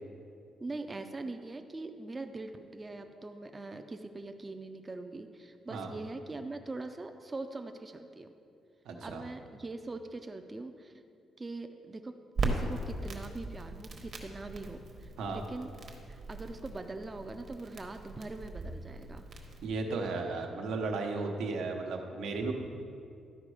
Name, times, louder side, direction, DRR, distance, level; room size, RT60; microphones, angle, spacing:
voice 1, 0.6-8.3 9.0-11.0 11.4-12.1 12.4-15.7 16.1-19.3, right 2 dB, 15° right, 6 dB, 0.3 m, -42 dB
voice 2, 8.8-9.2 15.2-15.4 19.6-22.5, right 3 dB, 90° right, 3 dB, 1.0 m, -34 dB
Crackle, 12.4-19.7, right 2 dB, 45° right, 0.9 m, -39 dB
12.0 x 5.1 x 4.8 m, 2.5 s
cardioid pair, 170°, 0 cm